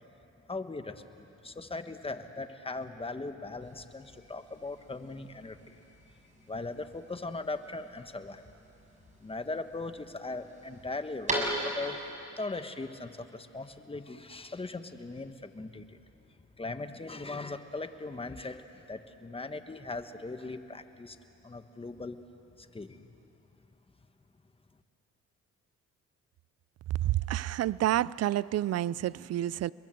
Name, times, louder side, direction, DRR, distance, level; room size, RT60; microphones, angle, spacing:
voice 1, 0.5-5.7 6.5-8.4 9.2-12.0 12.4-16.0 16.6-21.2 21.4-22.2 22.6-23.0, left 3 dB, 20° left, 9 dB, 1.4 m, -39 dB
sound 1, 3.6-12.1, right 1 dB, 25° right, 6.9 m, -40 dB
voice 2, 27.0-29.7, right 13 dB, 55° right, 21 dB, 0.5 m, -29 dB
30.0 x 21.0 x 7.8 m, 2.9 s
cardioid pair, 90°, 30 cm